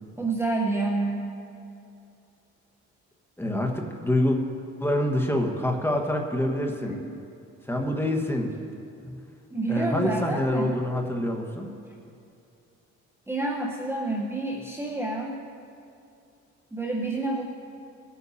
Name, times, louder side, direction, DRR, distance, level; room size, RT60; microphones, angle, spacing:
voice 1, 0.2-1.3 6.9-7.2 9.1-9.2 9.5-10.7 13.3-15.4 16.7-17.4, right 2 dB, 10° right, -2 dB, 1.1 m, -28 dB
voice 2, 3.4-4.4 4.8-6.9 7.7-8.5 9.7-11.7, left 1 dB, 10° left, 2 dB, 1.5 m, -26 dB
20.0 x 9.5 x 2.8 m, 2.6 s
cardioid pair, 90°, 30 cm